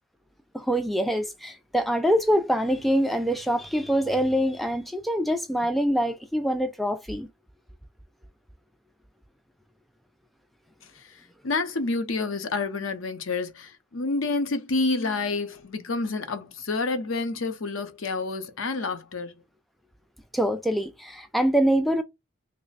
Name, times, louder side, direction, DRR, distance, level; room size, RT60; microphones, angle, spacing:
voice 1, 0.5-7.3 20.3-22.0, equal, ahead, 0.3 m, -24 dB
voice 2, 11.0-19.4, left 3 dB, 80° left, 0.7 m, -29 dB
3.1 x 2.1 x 3.9 m
head